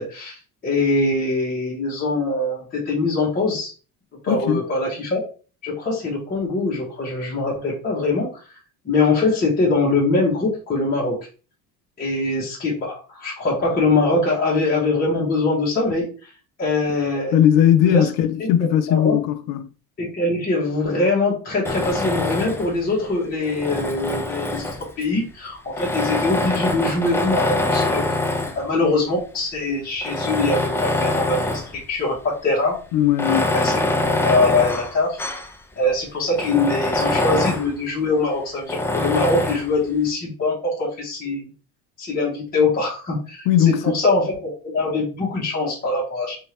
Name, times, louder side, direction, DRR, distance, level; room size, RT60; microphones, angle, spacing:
voice 1, 0.0-3.7 4.2-5.2 5.6-8.4 8.8-11.2 12.0-16.3 16.6-17.4 17.8-18.1 18.4-19.2 20.0-24.7 25.0-28.0 28.5-32.8 33.2-33.7 34.2-35.2 35.8-41.5 42.0-46.4, left 3 dB, 25° left, 1.4 m, -23 dB
voice 2, 4.3-4.7 17.3-19.7 32.9-33.5 43.5-44.0, left 10 dB, 70° left, 0.5 m, -18 dB
Tools, 21.6-22.8 23.4-25.0 25.7-28.6 29.3-29.4 30.0-31.8 32.1-32.2 33.1-35.5 35.9-36.0 36.3-37.7 38.7-39.7, left 2 dB, 5° left, 0.4 m, -24 dB
4.4 x 2.8 x 3.3 m
cardioid pair, 140°, 35 cm